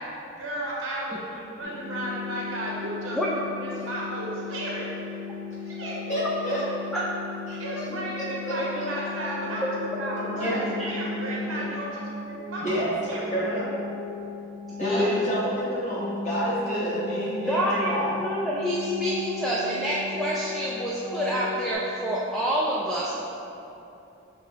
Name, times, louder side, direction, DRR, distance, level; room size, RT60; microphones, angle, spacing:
voice 1, 0.0-4.9 5.7-6.2 7.6-13.3, right 1 dB, 80° right, -4 dB, 0.9 m, -34 dB
sound 1, 1.6-11.6, left 6 dB, 90° left, 1.0 m, -37 dB
voice 2, 6.1-6.6 7.5-8.6 10.2-10.6 12.6-12.9 13.3-13.6 14.8-18.0, equal, 35° left, -8 dB, 1.2 m, -29 dB
sound 2, 9.4-21.7, left 1 dB, 60° left, 1.1 m, -36 dB
voice 3, 14.8-15.1 17.5-23.2, equal, ahead, -7 dB, 0.3 m, -27 dB
6.1 x 3.0 x 2.9 m, 2.8 s
head